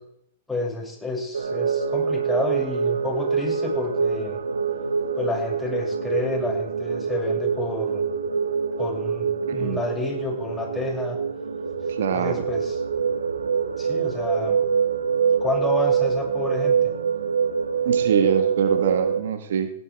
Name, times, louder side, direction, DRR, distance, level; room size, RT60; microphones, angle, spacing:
voice 1, 0.5-4.4 5.2-8.1 8.8-11.2 12.1-12.8 13.8-14.6 15.4-16.8, left 2 dB, 5° left, -3 dB, 6.6 m, -30 dB
sound 1, 1.3-19.2, right 6 dB, 85° right, 1.6 m, -25 dB
voice 2, 9.5-9.8 11.9-12.4 17.8-19.7, right 8 dB, 70° right, 8 dB, 1.5 m, -24 dB
17.0 x 11.5 x 3.5 m, 0.73 s
hypercardioid pair, 110°, 0 cm